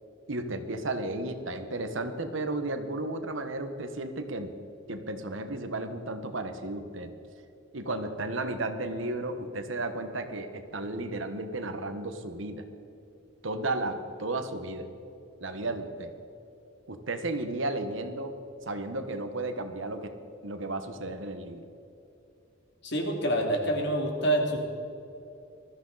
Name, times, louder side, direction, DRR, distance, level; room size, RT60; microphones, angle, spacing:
voice 1, 0.3-4.5 4.9-7.1 7.7-12.7 13.4-14.9 15.4-16.1 16.9-18.3 18.6-20.1 20.4-21.6, right 2 dB, 70° right, 7 dB, 1.3 m, -33 dB
voice 2, 22.8-24.7, right 1 dB, 60° left, 2 dB, 2.7 m, -27 dB
20.5 x 13.5 x 4.1 m, 2.8 s
head